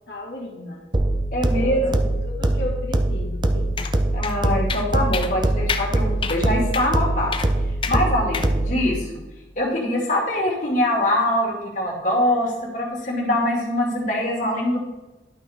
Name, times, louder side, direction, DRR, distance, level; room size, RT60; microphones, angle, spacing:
voice 1, 0.1-0.9 1.5-2.0 2.2-3.8 8.5-8.7, left 1 dB, 65° left, -1 dB, 1.6 m, -35 dB
sound 1, 0.9-8.9, right 1 dB, 25° right, 0.5 m, -23 dB
voice 2, 1.3-2.0 4.1-7.3 7.9-9.1 9.6-14.8, left 1 dB, 45° left, -3 dB, 2.4 m, -23 dB
sound 2, 3.8-3.9 4.2-4.3 4.7-4.9 5.1-5.3 5.7-5.9 6.2-6.4 6.7-6.9 7.3-7.5 7.8-8.0 8.3-8.5, left 6 dB, 25° left, 0.4 m, -28 dB
11.5 x 5.3 x 3.6 m, 1.1 s
head